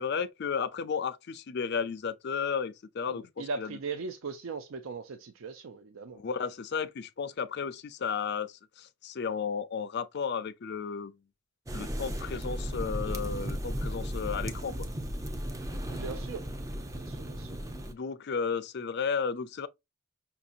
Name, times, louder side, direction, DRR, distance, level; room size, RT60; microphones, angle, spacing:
voice 1, 0.0-3.8 6.1-11.1 11.7-14.8 17.9-19.7, left 6 dB, 50° left, 0.4 m, -33 dB
voice 2, 3.1-6.2 15.9-16.5 16.9-17.6, right 4 dB, 75° right, 0.5 m, -39 dB
sound 1, 11.7-17.9, equal, 15° right, 0.5 m, -35 dB
5.7 x 2.7 x 2.5 m
head